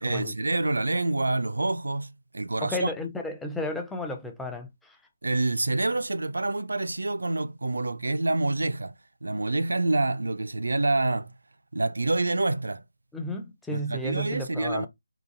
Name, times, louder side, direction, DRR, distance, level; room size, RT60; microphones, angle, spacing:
voice 1, 0.0-2.9 5.2-8.9 9.2-11.3 11.7-12.8 13.7-14.9, right 2 dB, 75° right, 0.3 m, -27 dB
voice 2, 2.6-5.0 13.1-14.9, left 1 dB, 5° left, 0.5 m, -33 dB
3.9 x 2.4 x 2.5 m
figure-of-eight pair, 155°, 0 cm